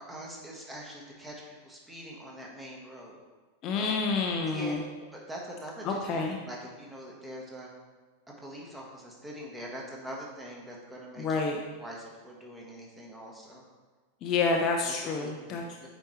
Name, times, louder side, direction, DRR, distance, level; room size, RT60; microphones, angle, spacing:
voice 1, 0.0-3.2 3.8-4.0 4.4-4.8 5.1-7.7 8.4-11.4 11.8-13.6 14.4-14.6 15.2-15.9, equal, 10° right, -2 dB, 1.2 m, -43 dB
voice 2, 3.6-4.8 5.8-6.4 11.2-11.6 14.2-15.6, left 4 dB, 35° left, 2 dB, 0.6 m, -28 dB
7.6 x 4.3 x 3.1 m, 1.3 s
figure-of-eight pair, 90°, 0 cm